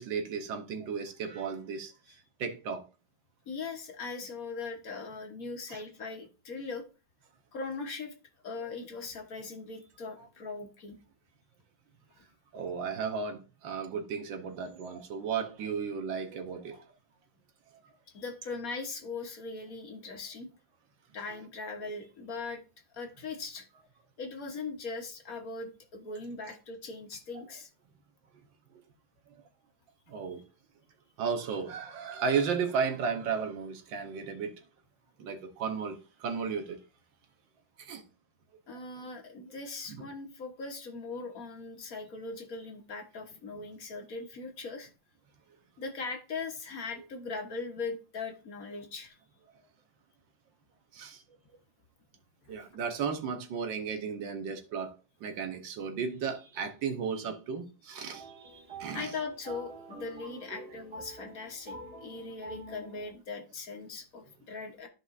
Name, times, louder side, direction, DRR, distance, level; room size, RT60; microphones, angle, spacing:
voice 1, 0.0-1.9 2.4-2.8 5.7-5.8 10.2-10.3 12.5-16.8 30.1-30.4 31.2-34.5 35.2-36.8 37.8-38.0 50.9-51.2 52.5-54.9 55.2-59.1 60.5-60.7, right 6 dB, 80° right, 1.7 m, -34 dB
voice 2, 3.5-6.8 7.5-8.1 8.4-11.0 18.1-20.5 21.1-22.6 22.9-23.7 24.2-27.7 38.7-44.9 45.8-49.2 52.5-52.7 58.9-64.9, left 4 dB, 50° left, 1.5 m, -40 dB
sound 1, 58.1-63.1, right 2 dB, 30° right, 2.3 m, -47 dB
13.0 x 4.9 x 2.6 m
omnidirectional pair, 2.0 m